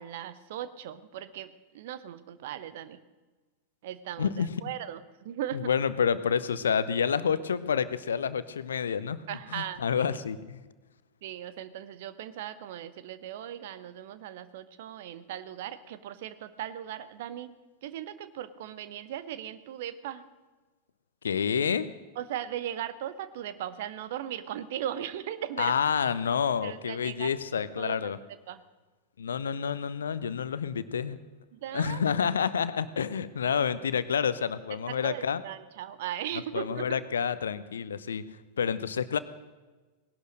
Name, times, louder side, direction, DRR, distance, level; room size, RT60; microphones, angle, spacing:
voice 1, 0.0-3.0 3.8-5.6 9.3-9.8 11.2-17.5 17.8-20.2 22.2-25.7 26.6-27.3 27.8-28.0 28.5-28.6 31.5-32.2 35.0-37.0, right 11 dB, 55° right, 14 dB, 1.0 m, -38 dB
voice 2, 4.2-4.5 5.5-9.2 9.5-10.6 21.2-21.9 25.6-28.2 29.2-31.2 31.7-35.4 36.5-38.2 38.6-39.2, left 7 dB, 70° left, 15 dB, 0.8 m, -28 dB
18.5 x 11.5 x 6.4 m, 1.3 s
figure-of-eight pair, 90°, 0 cm